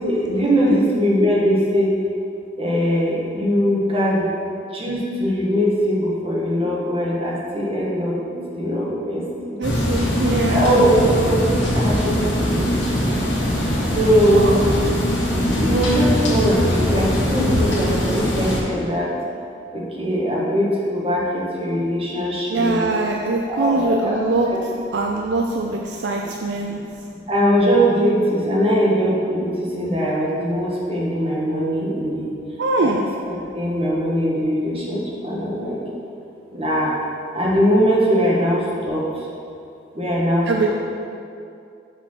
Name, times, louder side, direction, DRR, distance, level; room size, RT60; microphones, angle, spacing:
voice 1, 0.0-1.9 2.6-4.3 4.8-8.1 8.5-9.2 9.5-9.6 10.5-11.4 11.7-12.2 12.6-12.7 13.9-14.5 15.4-19.1 20.0-22.8 23.5-24.2 24.5-24.6 27.3-29.5 29.7-32.3 32.8-32.9 33.5-35.8 36.5-36.9 37.3-38.6 38.8-39.0 40.0-40.7, equal, 30° right, -6 dB, 1.5 m, -20 dB
sound 1, 9.6-18.6, equal, 80° left, 1.8 m, -21 dB
voice 2, 9.6-10.6 14.3-14.6 22.5-24.5 24.9-26.8 32.6-33.0 40.5-40.7, right 2 dB, 70° right, 1 dB, 0.4 m, -22 dB
6.9 x 4.2 x 6.2 m, 2.5 s
head